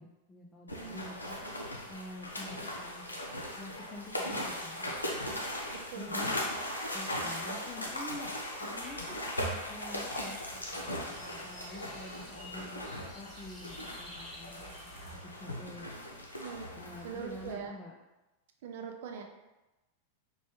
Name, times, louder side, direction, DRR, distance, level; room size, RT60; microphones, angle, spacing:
voice 1, 0.0-1.4 1.9-3.2 3.6-4.9 6.0-6.4 6.9-16.0 16.8-17.9, left 2 dB, 15° left, -2 dB, 0.4 m, -47 dB
sound 1, 0.7-17.5, left 1 dB, 80° left, 0.5 m, -39 dB
voice 2, 0.7-1.0 1.4-1.6 5.7-6.7 7.5-7.8 9.1-9.5 16.3-16.7 17.0-17.7 18.6-19.2, right 6 dB, 55° right, 3 dB, 0.4 m, -43 dB
sound 2, 8.8-15.2, equal, ahead, 0.8 m, -50 dB
3.0 x 2.2 x 2.9 m, 1.0 s
figure-of-eight pair, 90°, 0 cm